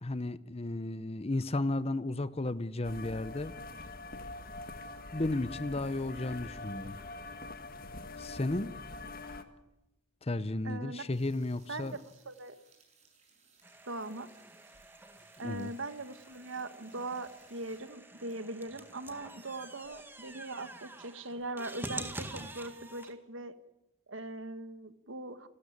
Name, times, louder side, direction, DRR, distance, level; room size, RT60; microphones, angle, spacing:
voice 1, 0.0-3.5 5.1-7.0 8.2-8.8 10.2-12.0 15.4-15.7, left 2 dB, 30° left, 0.7 m, -34 dB
sound 1, 2.8-9.4, left 2 dB, 45° left, 1.7 m, -44 dB
voice 2, 10.6-11.0 11.7-12.6 13.9-14.3 15.4-23.6 24.1-25.5, right 2 dB, 70° right, 1.5 m, -41 dB
sound 2, 11.1-18.6 19.0-19.1 19.3-19.4 20.0-20.1 20.4-21.4, right 4 dB, 35° right, 7.0 m, -66 dB
sound 3, 13.6-23.1, right 1 dB, 10° right, 1.9 m, -47 dB
29.5 x 13.0 x 9.9 m
head